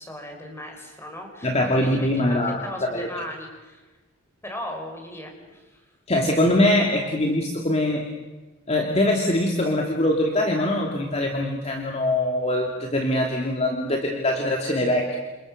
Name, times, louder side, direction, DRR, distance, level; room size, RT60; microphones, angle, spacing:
voice 1, 0.0-3.9 4.4-5.8, left 1 dB, 10° left, 3 dB, 5.6 m, -37 dB
voice 2, 1.4-3.1 6.1-8.0 8.7-15.2, left 1 dB, 30° left, 1 dB, 2.8 m, -23 dB
29.5 x 28.0 x 6.7 m, 1.2 s
head